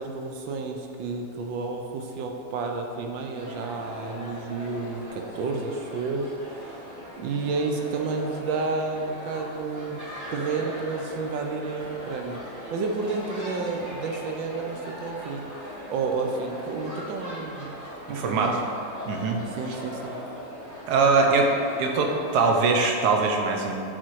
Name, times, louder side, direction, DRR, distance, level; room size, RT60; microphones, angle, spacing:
voice 1, 0.0-6.3 6.7-6.8 7.2-10.0 10.3-12.4 12.7-15.4 15.9-17.7 18.1-18.6 19.6-20.2 21.3-21.4, right 4 dB, 80° right, 3 dB, 1.5 m, -30 dB
sound 1, 3.3-22.8, left 1 dB, 10° right, 1.0 m, -39 dB
voice 2, 18.1-18.6 19.0-19.4 20.9-21.5 21.8-23.7, right 4 dB, 65° right, 2 dB, 1.2 m, -22 dB
7.8 x 4.4 x 4.7 m, 2.7 s
omnidirectional pair, 2.1 m